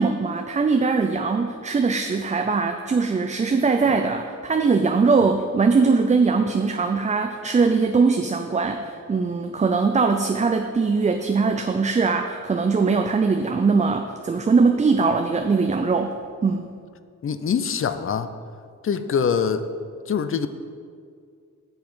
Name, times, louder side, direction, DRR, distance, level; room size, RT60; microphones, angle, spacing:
voice 1, 0.0-16.1 16.4-16.7, right 4 dB, 25° right, 5 dB, 0.4 m, -21 dB
voice 2, 17.2-18.3 18.8-19.7 20.1-20.5, left 7 dB, 45° left, 10 dB, 0.5 m, -24 dB
7.7 x 7.0 x 5.5 m, 2.2 s
wide cardioid pair, 115°, 31 cm